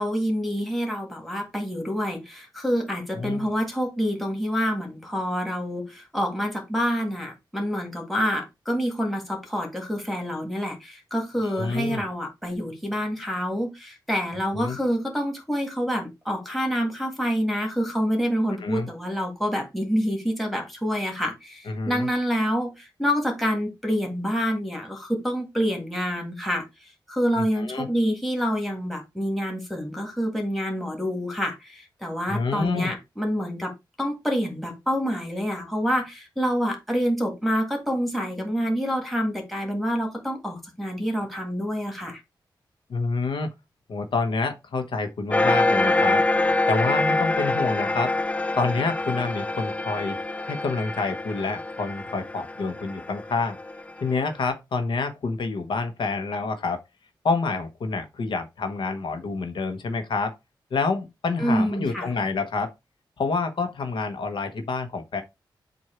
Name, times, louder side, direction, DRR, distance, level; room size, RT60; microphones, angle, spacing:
voice 1, 0.0-26.6 27.1-33.7 34.0-42.2 61.4-62.1, equal, ahead, 1.8 m, -27 dB
voice 2, 3.1-3.5 11.4-12.0 14.5-14.8 18.6-18.9 21.7-22.1 27.4-27.9 32.3-32.9 42.9-43.5 43.9-46.2 46.7-48.1 48.6-50.2 50.5-53.6 54.0-56.8 57.2-60.3 60.7-62.7 63.2-65.2, left 4 dB, 80° left, 1.1 m, -28 dB
sound 1, 45.3-54.3, left 2 dB, 15° left, 0.4 m, -25 dB
7.8 x 2.7 x 4.4 m
wide cardioid pair, 150°, 8 cm